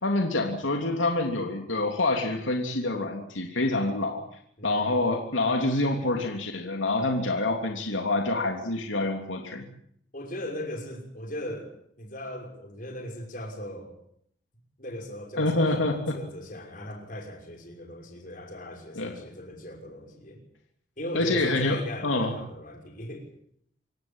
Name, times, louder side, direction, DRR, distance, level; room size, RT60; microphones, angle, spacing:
voice 1, 0.0-4.2 4.6-9.6 15.4-16.2 19.0-19.2 21.1-22.3, left 2 dB, 80° left, 3 dB, 3.1 m, -26 dB
voice 2, 4.6-5.1 10.1-13.9 14.8-20.4 21.0-23.3, left 1 dB, 45° left, 2 dB, 6.2 m, -38 dB
27.0 x 16.0 x 9.0 m, 0.69 s
head